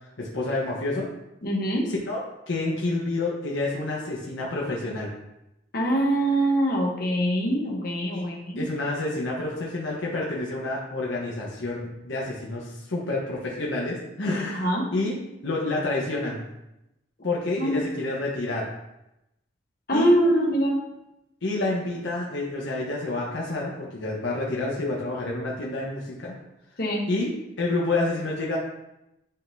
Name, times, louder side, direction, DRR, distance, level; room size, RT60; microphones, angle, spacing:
voice 1, 0.2-1.1 2.1-5.1 8.1-8.2 8.6-16.5 17.2-18.7 19.9-20.1 21.4-26.3 27.1-27.3 27.6-28.6, left 2 dB, 80° left, -4 dB, 1.1 m, -29 dB
voice 2, 1.4-1.9 5.7-8.6 14.5-14.9 17.6-17.8 19.9-20.8 26.8-27.0, right 1 dB, 50° left, -1 dB, 1.0 m, -23 dB
9.9 x 3.7 x 2.7 m, 0.90 s
head